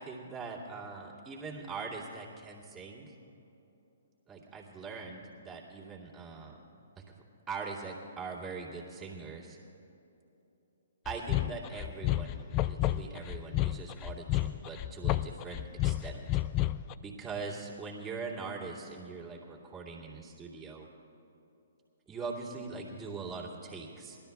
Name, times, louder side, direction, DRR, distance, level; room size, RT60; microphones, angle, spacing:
voice 1, 0.0-3.1 4.3-6.6 7.0-7.1 7.5-9.6 11.0-16.3 17.0-20.9 22.1-24.2, right 4 dB, 15° right, -4 dB, 2.4 m, -42 dB
sound 1, 11.1-16.9, left 15 dB, 30° left, 0.3 m, -31 dB
20.0 x 12.5 x 3.5 m, 2.9 s
figure-of-eight pair, 130°, 0 cm